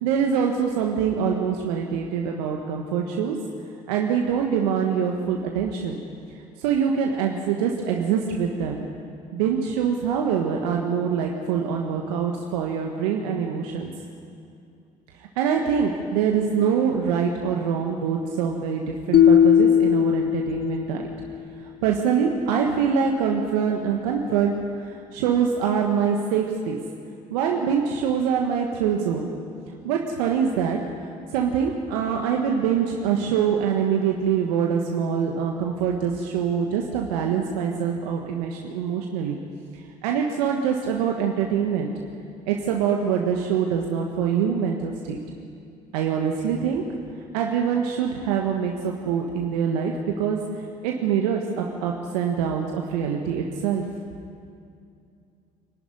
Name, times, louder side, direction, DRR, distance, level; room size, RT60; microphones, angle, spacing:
voice 1, 0.0-3.3 3.9-6.0 6.6-8.8 9.3-13.9 15.3-21.0 21.8-26.8 27.3-29.3 29.7-30.8 31.3-39.4 40.0-41.9 42.5-45.2 45.9-46.8 47.3-50.4 50.8-53.8, right 7 dB, 80° right, 1 dB, 1.5 m, -24 dB
sound 1, 19.1-21.3, left 9 dB, 50° left, 0.5 m, -18 dB
24.5 x 11.5 x 9.7 m, 2.5 s
hypercardioid pair, 65°, 20 cm